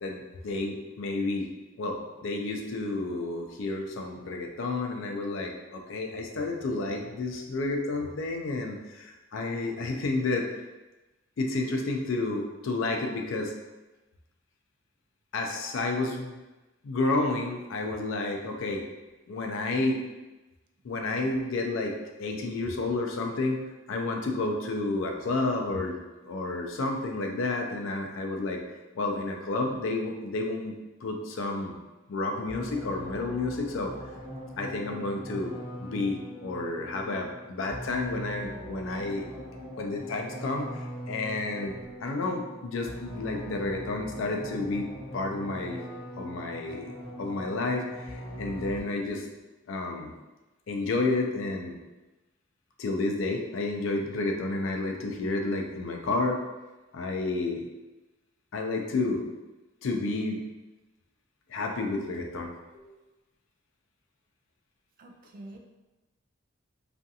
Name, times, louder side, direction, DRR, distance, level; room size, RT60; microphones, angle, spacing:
voice 1, 0.0-1.5 1.8-10.5 11.4-13.5 15.3-16.4 16.8-18.8 19.3-20.0 20.8-23.6 23.9-26.0 26.2-28.6 28.9-31.8 32.1-33.9 34.6-35.5 35.8-39.3 39.8-45.8 46.1-46.9 47.2-49.3 49.7-50.1 50.7-51.7 52.8-56.4 56.9-57.6 58.5-59.2 59.8-60.4 61.5-62.9, left 2 dB, 75° left, 2 dB, 0.4 m, -31 dB
sound 1, 32.5-49.1, equal, 25° left, 0.6 m, -41 dB
voice 2, 65.0-65.6, right 1 dB, 45° right, 3 dB, 0.3 m, -46 dB
2.4 x 2.3 x 2.6 m, 1.1 s
head